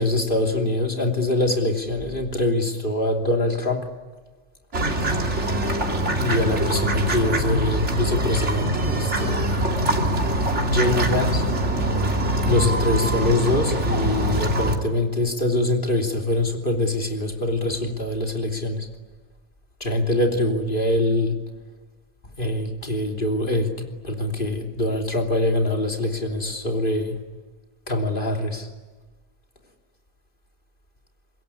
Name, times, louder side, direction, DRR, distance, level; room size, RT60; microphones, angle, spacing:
voice 1, 0.0-3.9 6.1-9.5 10.2-11.5 12.4-18.9 19.8-21.4 22.4-27.2 27.9-28.7, left 1 dB, 50° left, 3.3 m, -24 dB
sound 1, 4.7-14.8, right 1 dB, 85° right, 3.1 m, -23 dB
25.5 x 22.0 x 9.9 m
omnidirectional pair, 1.2 m